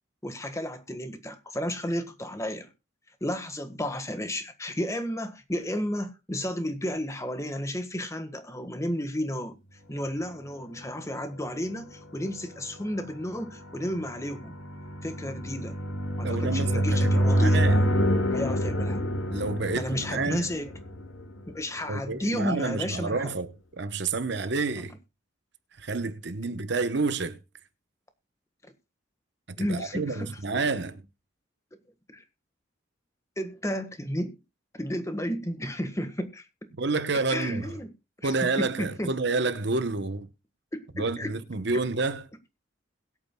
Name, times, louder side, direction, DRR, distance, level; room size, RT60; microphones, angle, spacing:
voice 1, 0.2-2.7 3.2-9.6 9.9-14.6 15.0-15.8 16.2-17.8 18.3-19.0 19.7-20.7 21.5-23.3 28.6-28.7 29.6-30.6 32.1-32.2 33.4-34.4 34.8-36.4 37.3-37.9 38.2-39.1 40.7-41.4, equal, 15° left, 1.5 m, -32 dB
sound 1, 10.6-21.4, equal, 70° left, 7.1 m, -28 dB
voice 2, 16.2-17.8 19.3-20.5 21.9-23.5 23.8-24.9 25.8-27.4 29.6-31.0 36.7-37.7 38.2-40.3 41.0-42.2, right 3 dB, 60° right, 1.0 m, -29 dB
sound 2, 17.5-22.3, left 2 dB, 85° left, 1.1 m, -34 dB
21.5 x 8.8 x 2.3 m
head